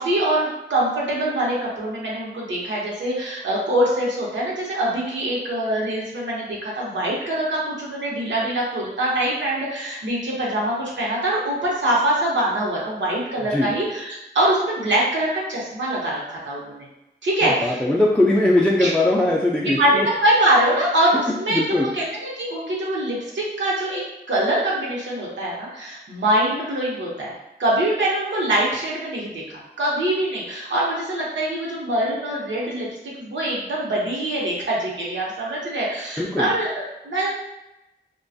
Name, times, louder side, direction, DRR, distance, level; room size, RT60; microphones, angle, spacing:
voice 1, 0.0-16.9 17.2-17.8 18.8-18.9 19.6-24.0 24.3-27.3 27.6-32.9 33.2-37.3, right 1 dB, 85° right, -5 dB, 0.8 m, -23 dB
voice 2, 17.4-20.1 21.5-21.9 36.2-36.5, left 1 dB, 5° left, -4 dB, 0.3 m, -20 dB
2.4 x 2.2 x 2.5 m, 0.92 s
wide cardioid pair, 75°, 19 cm